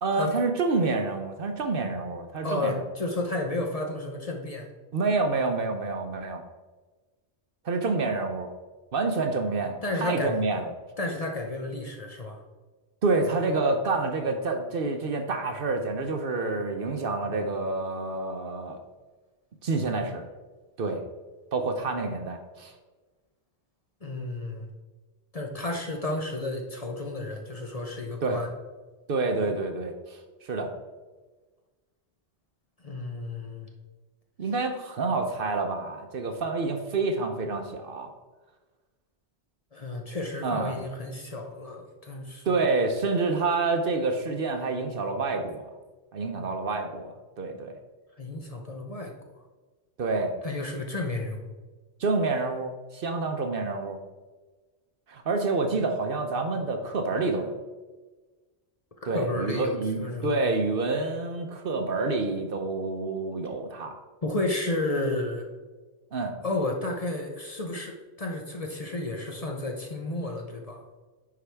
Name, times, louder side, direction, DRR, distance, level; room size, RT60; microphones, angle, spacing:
voice 1, 0.0-2.8 4.9-6.4 7.6-8.5 8.9-10.7 13.0-18.8 19.6-20.3 20.8-21.0 21.5-22.7 28.2-28.4 29.1-30.7 34.4-38.1 40.4-40.8 42.5-45.7 46.1-47.8 50.0-50.4 52.0-54.0 55.1-57.6 59.1-63.9 66.1-66.3, right 3 dB, 60° right, 5 dB, 0.9 m, -28 dB
voice 2, 2.4-4.7 9.8-10.4 11.0-12.4 24.0-24.7 25.3-28.5 32.8-33.7 39.7-42.6 48.2-49.1 50.4-51.5 59.0-60.4 64.2-65.5 66.4-70.8, left 2 dB, 35° left, 2 dB, 0.8 m, -32 dB
9.7 x 4.7 x 3.4 m, 1.3 s
omnidirectional pair, 1.1 m